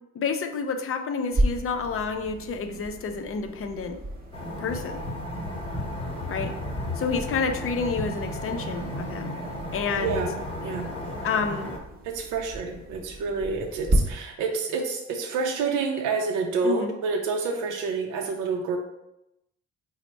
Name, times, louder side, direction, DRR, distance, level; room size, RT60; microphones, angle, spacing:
voice 1, 0.1-4.0 4.6-5.0 6.3-6.5 7.0-9.3 9.7-10.2 11.2-11.7 16.6-16.9, left 5 dB, 45° left, 6 dB, 0.5 m, -29 dB
sound 1, 1.3-14.0, right 1 dB, 30° right, 0.7 m, -34 dB
sound 2, 4.3-11.8, left 1 dB, 20° left, 1.0 m, -34 dB
voice 2, 10.0-10.3 10.6-10.9 12.0-18.8, right 4 dB, 85° right, 3 dB, 0.5 m, -28 dB
4.0 x 2.1 x 4.4 m, 0.87 s
cardioid pair, 90°, 30 cm